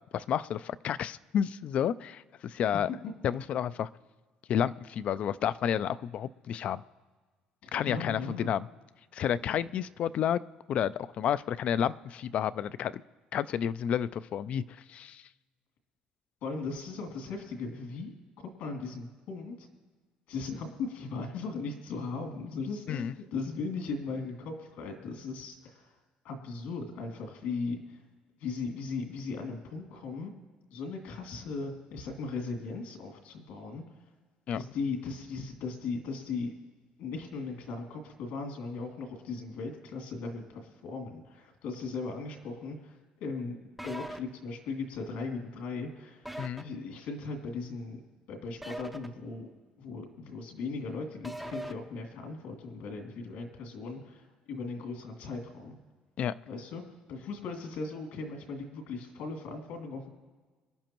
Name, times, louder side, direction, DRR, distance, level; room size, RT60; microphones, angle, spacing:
voice 1, 0.1-2.9 3.2-3.9 4.5-6.8 7.7-8.7 9.1-10.4 10.7-13.0 13.3-15.3 22.9-23.1 34.5-34.6 46.4-46.7 56.2-56.3, left 9 dB, 50° left, 16 dB, 0.3 m, -30 dB
voice 2, 7.6-8.5 16.4-18.2 18.6-19.7 20.3-26.0 26.2-28.0 28.4-30.3 30.7-34.0 34.5-36.5 37.0-43.6 43.8-48.0 48.3-49.5 49.8-55.8 56.5-56.8 57.1-60.1, left 4 dB, 80° left, 3 dB, 2.6 m, -38 dB
sound 1, 43.8-44.2 46.2-46.6 48.6-49.1 51.2-51.7, right 1 dB, 5° right, 0.5 m, -40 dB
26.0 x 11.0 x 3.0 m, 1.4 s
cardioid pair, 145°, 3 cm